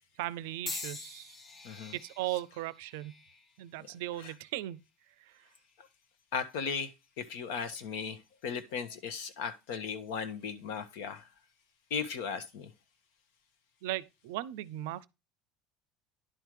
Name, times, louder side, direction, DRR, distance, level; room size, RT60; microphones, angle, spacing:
voice 1, 0.2-1.4 1.9-3.2 3.6-4.8 5.2-5.3 13.8-15.1, right 15 dB, 80° right, 0.4 m, -37 dB
sound 1, 0.7-4.8 5.5-5.9 6.9-7.1, left 3 dB, 35° left, 1.0 m, -46 dB
voice 2, 6.3-6.9 7.2-11.3 11.9-12.7, left 6 dB, 80° left, 1.2 m, -37 dB
10.5 x 3.7 x 4.7 m
supercardioid pair, 105°, 0 cm